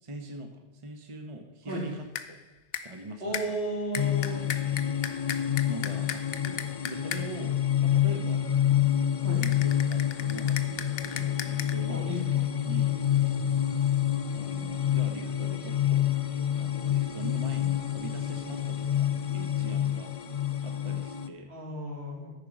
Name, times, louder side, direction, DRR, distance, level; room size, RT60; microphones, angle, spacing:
voice 1, 0.0-2.4 2.8-3.6 5.7-8.4 9.2-12.2 12.7-13.0 14.3-16.1 16.6-20.1 20.6-21.5, right 2 dB, 30° right, 3 dB, 1.0 m, -42 dB
sound 1, 1.7-2.4 2.7-3.0 3.3-7.5 9.4-11.7, left 8 dB, 70° left, 0.9 m, -38 dB
voice 2, 3.2-4.4 9.2-9.4 11.9-12.4 21.5-22.3, right 1 dB, 75° right, -5 dB, 3.4 m, -34 dB
sound 2, 4.0-21.3, left 11 dB, 45° left, 0.4 m, -28 dB
13.5 x 5.1 x 6.0 m, 1.0 s
omnidirectional pair, 1.1 m